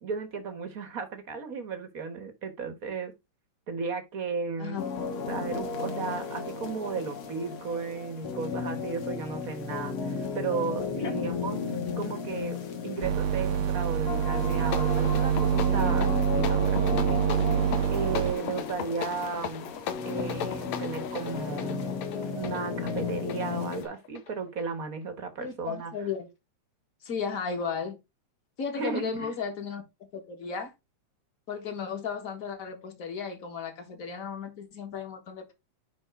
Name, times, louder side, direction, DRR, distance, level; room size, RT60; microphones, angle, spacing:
voice 1, 0.0-3.1 3.7-4.8 5.3-11.6 12.0-12.6 12.8-17.6 17.9-19.7 20.0-21.8 22.3-25.9 28.8-29.4, right 5 dB, 45° right, 1.2 m, -35 dB
sound 1, 4.8-23.9, left 5 dB, 55° left, 2.0 m, -35 dB
voice 2, 11.0-11.3 25.4-26.3 27.0-28.0 28.6-29.8 30.1-30.7 31.5-35.5, left 6 dB, 35° left, 1.8 m, -35 dB
sound 2, 13.0-18.3, right 9 dB, 80° right, 1.6 m, -26 dB
sound 3, 14.4-24.7, left 8 dB, 70° left, 2.1 m, -38 dB
10.0 x 3.9 x 3.6 m
omnidirectional pair, 3.3 m